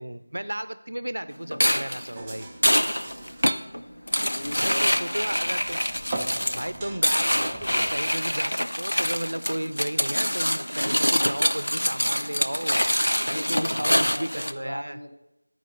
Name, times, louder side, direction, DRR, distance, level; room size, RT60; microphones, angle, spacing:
voice 1, 0.0-2.5 4.6-5.8 6.5-15.0, right 1 dB, 70° right, 12 dB, 0.5 m, -34 dB
sound 1, 1.5-14.5, equal, 85° left, 0.5 m, -25 dB
sound 2, 2.1-8.2, right 2 dB, 10° right, 0.4 m, -41 dB
voice 2, 4.0-5.3 13.3-15.1, left 1 dB, 40° left, 4 dB, 0.7 m, -38 dB
12.5 x 4.9 x 3.9 m, 0.93 s
figure-of-eight pair, 170°, 0 cm